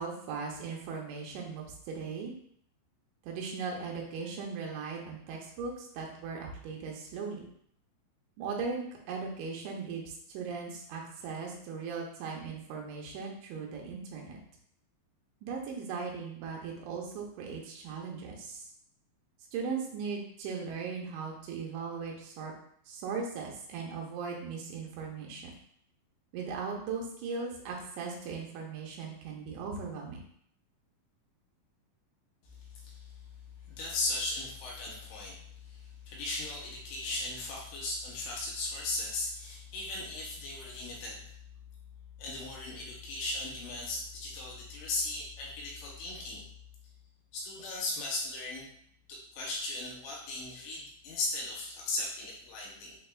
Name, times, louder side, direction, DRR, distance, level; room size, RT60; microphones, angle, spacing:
voice 1, 0.0-2.3 3.2-7.4 8.4-14.4 15.4-18.6 19.5-22.5 22.9-25.5 26.3-30.2, right 5 dB, 85° right, -1 dB, 3.0 m, -38 dB
voice 2, 33.7-35.3 35.7-35.8 36.1-41.2 42.2-46.4 47.3-48.6 49.1-53.0, left 2 dB, 80° left, -4 dB, 3.0 m, -37 dB
6.6 x 2.5 x 2.3 m, 0.65 s
omnidirectional pair, 5.2 m